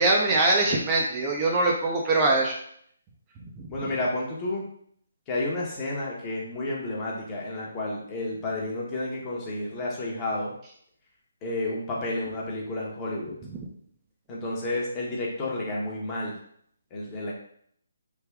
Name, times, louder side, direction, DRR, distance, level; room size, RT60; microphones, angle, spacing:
voice 1, 0.0-2.5 3.6-3.7, right 2 dB, 25° right, -1 dB, 0.5 m, -22 dB
voice 2, 3.7-4.6 5.3-10.5 11.4-13.4 14.3-16.3 16.9-17.3, left 2 dB, 20° left, -4 dB, 0.9 m, -31 dB
3.4 x 2.2 x 3.4 m, 0.65 s
figure-of-eight pair, 145°, 0 cm